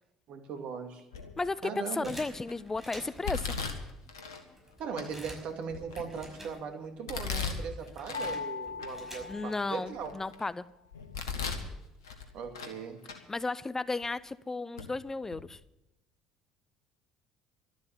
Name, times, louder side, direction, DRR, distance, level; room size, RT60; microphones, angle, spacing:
voice 1, 0.3-1.0 1.6-2.1 4.8-10.1 12.3-13.0, right 6 dB, 55° right, 5 dB, 2.3 m, -39 dB
Domestic sounds home sounds, 1.1-1.5 2.1-2.5 3.2-4.4 5.0-5.1 5.7-6.4 7.1-8.4 8.8-8.9 9.5-10.4 10.9-11.7 12.0-12.8 13.0-13.2 14.0-14.1 14.8-14.9 15.2-15.4, left 5 dB, 80° left, 1.6 m, -37 dB
voice 2, 1.4-3.5 9.3-10.6 13.3-15.6, left 3 dB, 20° left, 18 dB, 0.5 m, -34 dB
sound 1, 2.0-3.4 4.0-4.1 4.3-7.0 7.3-9.6, right 1 dB, 10° right, 5.8 m, -49 dB
sound 2, 8.1-10.3, left 5 dB, 85° right, 4.6 m, -40 dB
13.0 x 11.5 x 7.3 m, 0.90 s
hypercardioid pair, 60°, 2 cm